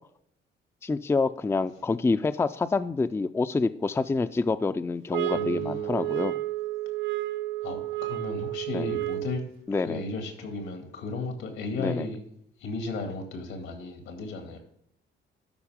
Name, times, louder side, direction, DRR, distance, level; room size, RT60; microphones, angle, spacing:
voice 1, 0.8-6.4 8.7-8.9 9.7-10.0 11.8-12.1, left 3 dB, 15° left, 0.4 m, -27 dB
sound 1, 5.1-9.5, right 18 dB, 80° right, 0.5 m, -31 dB
voice 2, 5.3-6.2 7.6-9.4 9.9-12.2 12.6-14.6, left 3 dB, 90° left, 2.2 m, -35 dB
12.0 x 4.7 x 3.6 m
cardioid pair, 90°, 20 cm